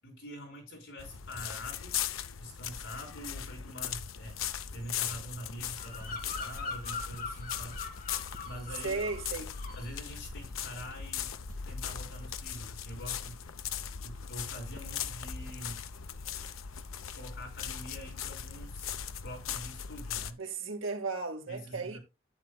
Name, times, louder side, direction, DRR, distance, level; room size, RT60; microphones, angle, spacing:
voice 1, 0.0-2.1 2.4-4.4 4.7-7.8 8.4-9.0 9.8-11.3 11.7-13.4 14.0-15.8 17.1-20.4 21.5-22.0, equal, 65° left, 5.7 m, -45 dB
sound 1, 1.0-20.3, left 8 dB, 85° left, 0.7 m, -39 dB
Bird vocalization bird call bird song, 5.7-9.3 9.5-10.0, left 4 dB, 40° left, 2.0 m, -42 dB
sound 2, 6.0-6.2 6.5-6.7 7.1-7.3 7.7-7.9 8.3-8.5 9.0-9.1 9.6-9.8 10.1-10.4 10.9-11.0 11.5-11.7 12.1-12.2, equal, 45° right, 2.4 m, -48 dB
voice 2, 8.8-9.5 20.4-22.0, right 4 dB, 80° right, 2.0 m, -35 dB
11.5 x 9.4 x 2.3 m
head